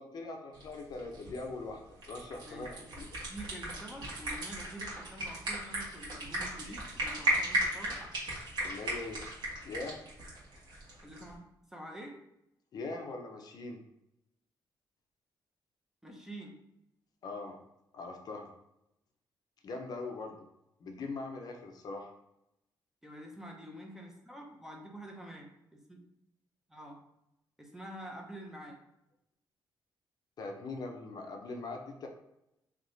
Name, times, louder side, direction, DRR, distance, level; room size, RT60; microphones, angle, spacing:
voice 1, 0.0-3.1 8.6-9.2 9.6-10.0 12.7-13.8 17.2-17.6 17.9-18.5 19.6-20.4 20.8-22.1 30.4-32.1, left 3 dB, 50° left, 3 dB, 0.6 m, -41 dB
sound 1, 0.5-11.3, right 1 dB, 60° right, 1.5 m, -36 dB
voice 2, 2.4-2.9 3.3-8.0 11.0-12.2 16.0-16.6 23.0-26.0 26.7-27.0 27.6-28.8, right 1 dB, 5° right, 0 dB, 0.6 m, -47 dB
3.5 x 2.8 x 3.9 m, 0.84 s
cardioid pair, 155°, 8 cm